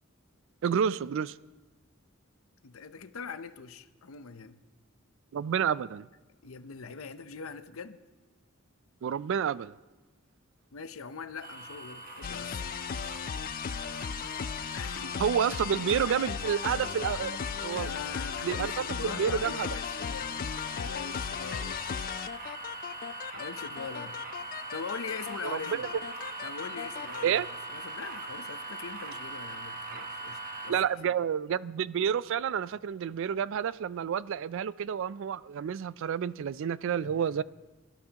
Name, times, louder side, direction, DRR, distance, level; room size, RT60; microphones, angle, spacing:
voice 1, 0.6-1.4 5.3-6.1 9.0-9.7 15.2-17.9 18.4-19.7 25.4-25.9 27.2-27.5 30.7-37.4, right 8 dB, 65° right, 0.3 m, -29 dB
voice 2, 2.6-4.6 6.4-8.0 10.7-12.6 14.7-15.2 17.7-22.1 23.3-24.3 24.7-25.9 26.4-31.1 37.0-37.4, left 5 dB, 80° left, 0.7 m, -42 dB
sound 1, 11.4-30.7, right 3 dB, 45° right, 1.1 m, -42 dB
sound 2, 12.2-27.3, left 7 dB, 45° left, 0.4 m, -36 dB
23.5 x 11.5 x 2.9 m
head